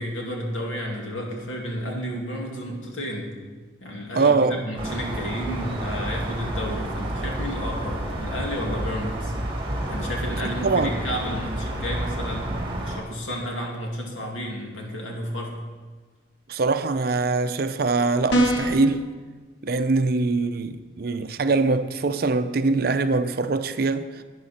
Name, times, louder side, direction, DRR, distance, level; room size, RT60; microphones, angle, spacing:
voice 1, 0.0-3.4 3.8-9.3 9.9-15.6, equal, 90° left, 2.3 m, -32 dB
voice 2, 4.1-4.6 10.4-10.9 16.5-19.1 19.6-24.2, right 3 dB, 50° right, 0.5 m, -23 dB
sound 1, 4.8-13.0, right 1 dB, 25° right, 1.7 m, -30 dB
sound 2, 18.3-18.9, right 1 dB, 65° left, 1.9 m, -21 dB
11.5 x 9.5 x 4.3 m
head